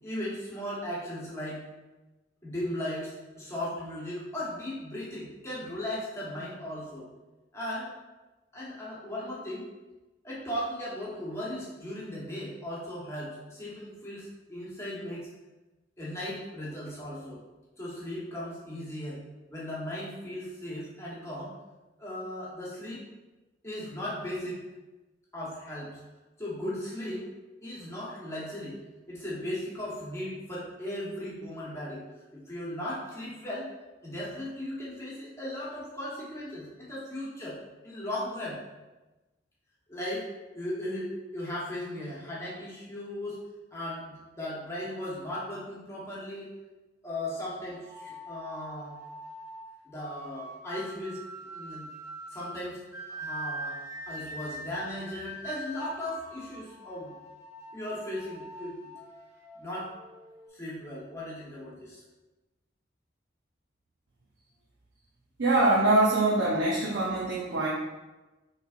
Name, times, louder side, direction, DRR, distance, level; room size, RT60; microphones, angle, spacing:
voice 1, 0.0-1.6 2.4-7.1 7.5-7.9 8.5-9.6 10.2-15.3 16.0-17.4 17.8-19.2 19.5-21.6 22.0-23.1 23.6-24.6 25.3-26.0 26.4-27.3 27.6-28.8 29.1-32.0 32.3-33.7 34.0-37.6 37.8-38.6 39.9-40.3 40.5-43.4 43.7-46.5 47.0-48.9 49.8-51.2 51.5-51.9 52.3-52.8 53.1-53.8 54.1-57.1 57.7-58.9 59.6-59.9 60.5-62.0, left 1 dB, 15° left, -7 dB, 1.0 m, -37 dB
sound 1, 47.7-60.5, right 1 dB, 15° right, 0.7 m, -43 dB
voice 2, 65.4-67.7, right 2 dB, 75° right, -4 dB, 0.6 m, -24 dB
5.4 x 3.2 x 2.5 m, 1.1 s
head